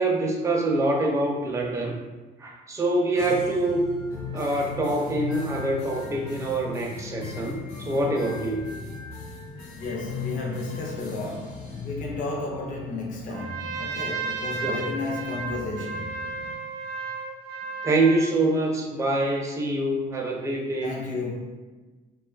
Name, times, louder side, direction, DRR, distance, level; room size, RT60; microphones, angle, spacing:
voice 1, 0.0-2.0 2.4-3.8 4.3-8.7 14.6-14.8 17.8-21.0, right 2 dB, 15° right, -1 dB, 0.4 m, -25 dB
sound 1, 3.1-16.6, left 4 dB, 80° left, 0.8 m, -38 dB
voice 2, 9.7-16.3 20.8-21.4, left 3 dB, 50° left, -2 dB, 0.5 m, -33 dB
Trumpet, 13.3-18.3, right 4 dB, 80° right, 0.4 m, -33 dB
2.5 x 2.3 x 2.3 m, 1.2 s
cardioid pair, 110°, 17 cm